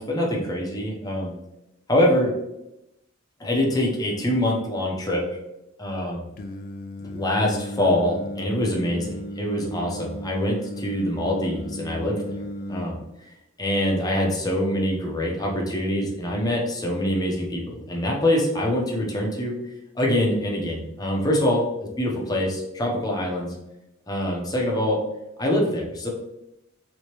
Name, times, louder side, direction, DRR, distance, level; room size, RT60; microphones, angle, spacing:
voice 1, 0.0-1.3 1.9-2.3 3.4-5.3 5.8-6.2 7.0-12.4 12.7-13.0 13.6-19.6 20.0-21.7 22.0-23.5 24.1-25.0 25.4-26.1, left 1 dB, 20° left, -1 dB, 0.7 m, -24 dB
Singing, 6.4-12.9, left 1 dB, 45° left, 0.3 m, -35 dB
3.3 x 3.2 x 3.0 m, 0.88 s
head